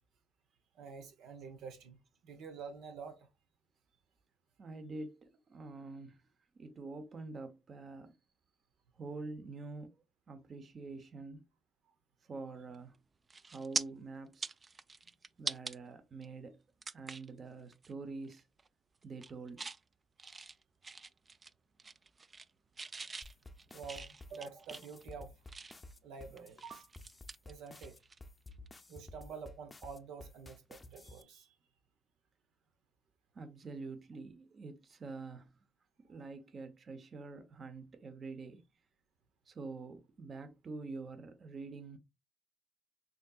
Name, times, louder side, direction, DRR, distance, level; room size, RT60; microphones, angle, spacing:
voice 1, 0.7-2.0 2.2-3.3 20.2-20.4 23.7-25.4 26.0-26.9 27.4-28.0 28.9-31.5 36.1-36.2, right 5 dB, 85° right, 0.8 m, -48 dB
voice 2, 4.6-6.2 6.6-8.1 9.0-11.4 12.3-13.0 13.5-14.5 15.4-16.6 16.9-18.4 19.0-19.7 33.3-35.5 36.1-38.7 39.5-42.0, right 3 dB, 45° right, 0.9 m, -46 dB
sound 1, 12.7-13.0 13.3-13.8 14.3-15.8 16.2-16.3 16.8-17.3 17.7-17.9 18.2-18.7 19.0-19.8 20.2-21.5 21.8-22.5 22.8-25.9 26.4-28.2 28.5-28.7 30.6-30.7, right 4 dB, 30° right, 0.3 m, -43 dB
sound 2, 23.2-31.2, left 2 dB, 25° left, 0.6 m, -52 dB
6.2 x 2.8 x 2.4 m
cardioid pair, 90°, 0 cm